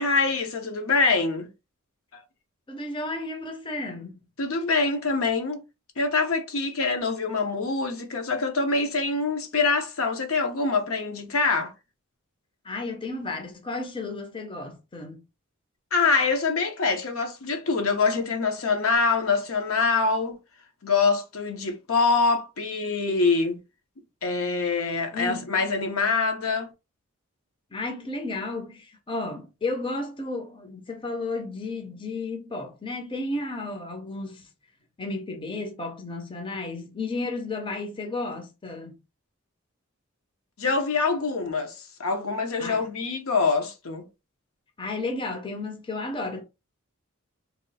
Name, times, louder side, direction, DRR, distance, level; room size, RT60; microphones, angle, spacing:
voice 1, 0.0-1.5 4.4-5.6 6.0-11.7 15.9-20.4 20.8-23.6 24.2-26.7 40.6-44.0, left 4 dB, 75° left, 0.9 m, -25 dB
voice 2, 2.7-4.1 12.6-15.2 25.1-25.4 27.7-34.4 35.0-39.0 42.6-42.8 44.8-46.4, left 2 dB, 25° left, 0.6 m, -33 dB
3.0 x 2.3 x 4.0 m
head